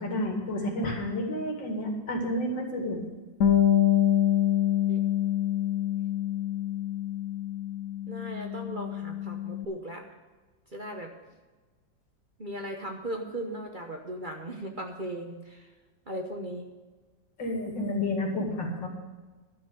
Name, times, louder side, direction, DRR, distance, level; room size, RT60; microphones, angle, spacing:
voice 1, 0.0-3.0 17.4-18.9, left 1 dB, 80° left, 2 dB, 3.0 m, -30 dB
Bass guitar, 3.4-9.7, left 11 dB, 55° left, 1.0 m, -26 dB
voice 2, 8.1-10.0 10.7-11.1 12.4-15.7 16.1-16.6, right 1 dB, 30° right, 2 dB, 1.1 m, -37 dB
12.0 x 6.3 x 8.3 m, 1.3 s
omnidirectional pair, 2.0 m